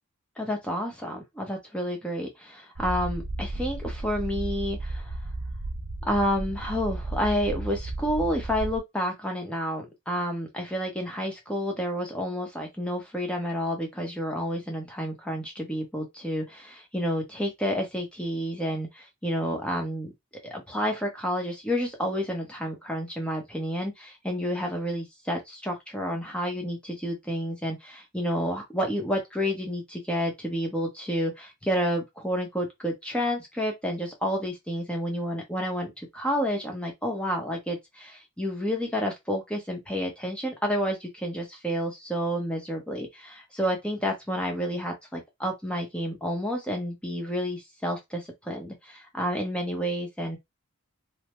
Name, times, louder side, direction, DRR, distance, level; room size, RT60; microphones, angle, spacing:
voice 1, 0.4-5.2 6.0-20.1 20.4-50.4, equal, 5° left, 0.7 m, -30 dB
sound 1, 2.8-8.8, right 2 dB, 35° right, 0.4 m, -34 dB
3.3 x 2.0 x 3.0 m
head